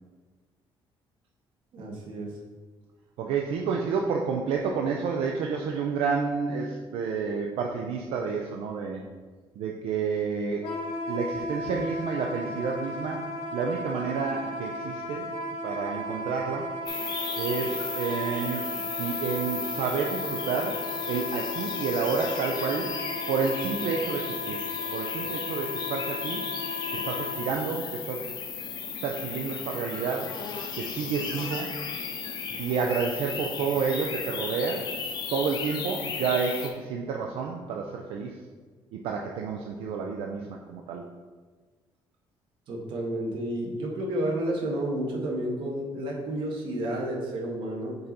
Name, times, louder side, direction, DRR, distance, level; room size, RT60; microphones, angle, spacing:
voice 1, 1.7-2.3 42.7-48.0, right 1 dB, 60° right, -1 dB, 1.2 m, -31 dB
voice 2, 3.2-9.0 9.6-10.6 11.1-13.2 13.5-15.3 15.6-16.7 17.4-22.9 23.3-24.6 24.9-26.4 26.9-28.3 29.0-30.3 30.8-31.7 32.6-34.9 35.3-38.4 38.9-41.0, right 5 dB, 85° right, 1 dB, 0.5 m, -30 dB
Wind instrument woodwind instrument, 10.6-27.4, left 1 dB, 80° left, 0.9 m, -35 dB
sound 1, 16.8-36.7, left 6 dB, 50° left, 0.6 m, -35 dB
5.4 x 4.0 x 4.3 m, 1.4 s
cardioid pair, 165°, 10 cm